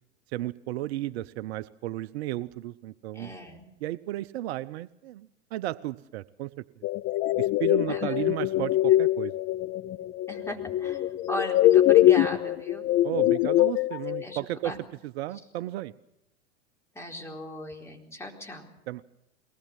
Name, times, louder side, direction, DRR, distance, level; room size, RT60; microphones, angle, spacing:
voice 1, 0.3-3.3 3.8-6.5 7.4-9.3 13.0-14.7 15.0-15.9 18.9-19.0, right 15 dB, 60° right, 14 dB, 0.8 m, -34 dB
voice 2, 3.1-3.6 7.9-8.2 10.3-12.9 14.1-14.8 16.9-18.7, equal, 5° left, 1 dB, 4.2 m, -37 dB
sound 1, 6.8-14.2, left 14 dB, 35° left, 0.7 m, -23 dB
22.5 x 20.0 x 7.4 m, 0.82 s
hypercardioid pair, 115°, 37 cm